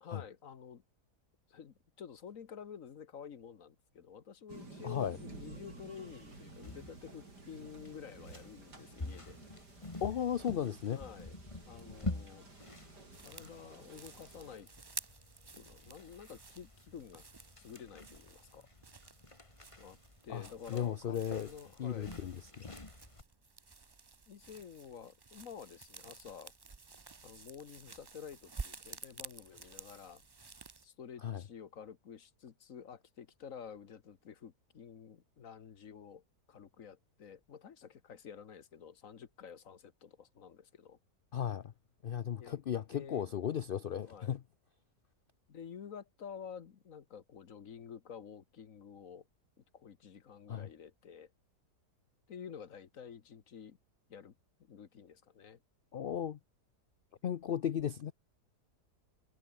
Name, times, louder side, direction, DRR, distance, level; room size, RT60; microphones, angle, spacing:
voice 1, 0.0-0.8 1.5-9.4 10.9-11.4 11.7-12.5 13.2-14.7 15.6-17.3 17.6-18.7 19.8-20.0 20.2-22.1 24.3-26.5 27.2-30.2 30.8-36.2 36.5-41.0 42.4-42.6 42.9-43.3 44.0-44.4 45.5-49.3 49.7-51.3 52.3-53.8 54.1-54.3 54.6-55.6, left 7 dB, 55° left, 1.5 m, -50 dB
sound 1, 4.5-14.6, right 3 dB, 90° right, 5.5 m, -53 dB
voice 2, 4.8-5.2 10.0-11.0 20.3-21.5 21.8-22.7 31.2-31.4 41.3-41.7 42.0-44.4 50.5-50.7 55.9-56.4 57.2-58.1, left 9 dB, 75° left, 0.5 m, -36 dB
sound 2, 6.1-23.2, left 2 dB, 20° left, 2.2 m, -48 dB
sound 3, 13.1-30.9, right 4 dB, 40° right, 0.3 m, -51 dB
omnidirectional pair, 1.7 m